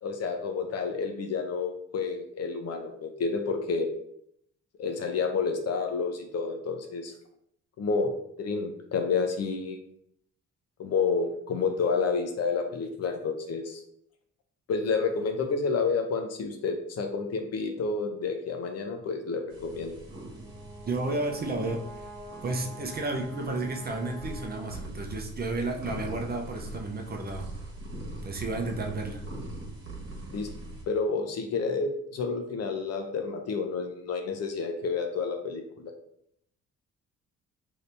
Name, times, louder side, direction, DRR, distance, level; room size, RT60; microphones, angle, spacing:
voice 1, 0.0-3.9 4.8-7.1 7.8-8.1 8.4-9.8 10.8-13.8 14.7-19.9 30.3-30.5 30.9-35.9, left 4 dB, 55° left, 5 dB, 0.6 m, -30 dB
sound 1, 19.5-30.8, right 1 dB, 50° right, 1.2 m, -42 dB
Brass instrument, 20.1-25.1, right 1 dB, 5° left, 0.6 m, -46 dB
voice 2, 20.9-22.1 22.4-27.5 28.2-29.2, right 2 dB, 30° right, 1 dB, 0.6 m, -32 dB
2.8 x 2.7 x 3.3 m, 0.71 s
cardioid pair, 90°, 30 cm